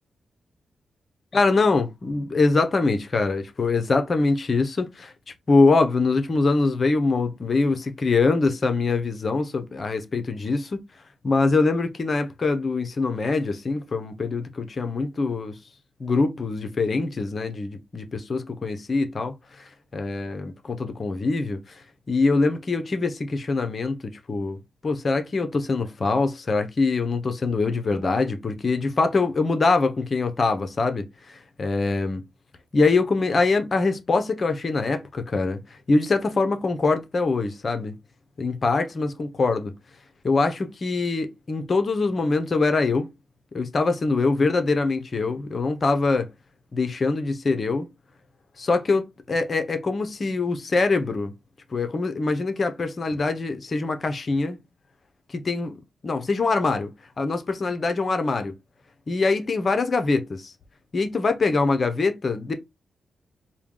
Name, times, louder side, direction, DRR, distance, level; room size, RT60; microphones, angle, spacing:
voice 1, 1.3-5.1 5.5-10.8 11.2-15.6 16.0-21.8 22.1-32.2 32.7-37.9 38.4-39.7 40.2-43.1 43.5-46.3 46.7-47.9 48.6-51.3 51.7-54.6 55.3-55.7 56.0-56.9 57.2-58.5 59.1-60.5 60.9-62.5, left 3 dB, 50° left, 0.9 m, -23 dB
4.4 x 2.3 x 3.7 m
cardioid pair, 55°, 0 cm